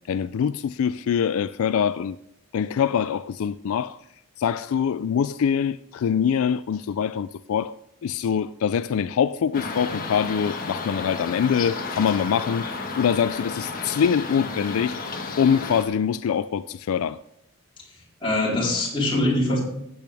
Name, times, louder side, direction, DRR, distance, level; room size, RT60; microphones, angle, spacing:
voice 1, 0.1-2.2 2.5-4.0 4.4-7.8 8.0-12.7 13.0-15.0 15.4-17.2, left 7 dB, 70° left, 0.3 m, -24 dB
sound 1, 9.5-15.9, left 4 dB, 40° left, 1.4 m, -32 dB
voice 2, 17.8-19.6, left 1 dB, 25° left, 4.1 m, -24 dB
14.5 x 8.6 x 3.4 m
head